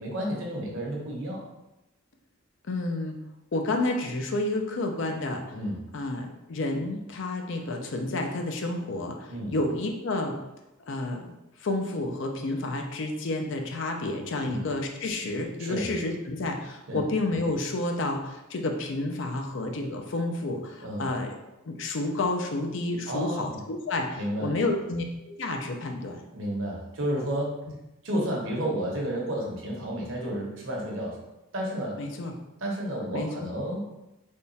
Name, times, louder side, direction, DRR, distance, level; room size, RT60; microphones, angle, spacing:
voice 1, 0.0-1.4 5.5-5.8 9.3-9.5 14.4-14.7 15.6-15.9 16.9-17.0 20.8-21.1 23.1-23.6 24.2-24.5 26.3-27.6 28.0-31.2 31.5-32.0 32.6-33.8, equal, 65° right, -2 dB, 1.0 m, -31 dB
voice 2, 2.7-3.2 3.5-5.5 5.9-10.4 10.9-11.3 11.6-21.4 21.7-26.2 32.0-32.3 33.1-33.5, left 2 dB, 60° left, 4 dB, 0.5 m, -30 dB
3.6 x 2.3 x 4.0 m, 0.96 s
head